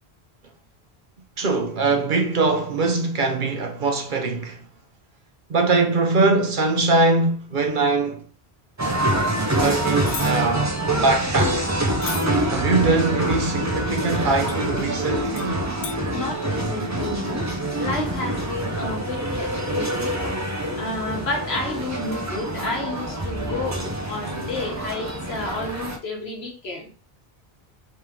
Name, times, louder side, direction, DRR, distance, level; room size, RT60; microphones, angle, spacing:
voice 1, 1.4-4.6 5.5-8.2 9.5-10.7 11.0-11.7 12.5-15.7, right 3 dB, 55° right, 0.8 m, -22 dB
sound 1, 8.8-26.0, right 1 dB, 25° right, 0.4 m, -26 dB
sound 2, 10.0-10.3 12.0-12.3 14.5-14.6 15.4-15.5 15.8-16.0, left 6 dB, 50° left, 0.6 m, -32 dB
voice 2, 16.1-20.2 20.7-26.9, left 2 dB, 75° left, 1.4 m, -31 dB
3.5 x 3.4 x 2.9 m
omnidirectional pair, 1.1 m